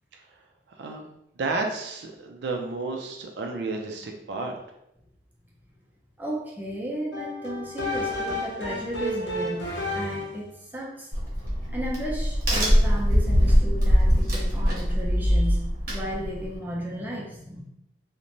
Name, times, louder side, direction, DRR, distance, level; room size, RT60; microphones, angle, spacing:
voice 1, 0.8-1.1 1.4-4.6, right 3 dB, 70° right, 3 dB, 0.4 m, -31 dB
voice 2, 6.2-9.7 9.9-11.1 11.7-17.6, equal, 10° right, -4 dB, 0.5 m, -34 dB
sound 1, 7.1-10.5, left 1 dB, 75° left, 0.7 m, -31 dB
Crack, 11.1-16.6, equal, 50° right, 0.8 m, -22 dB
2.6 x 2.1 x 2.9 m, 0.80 s
head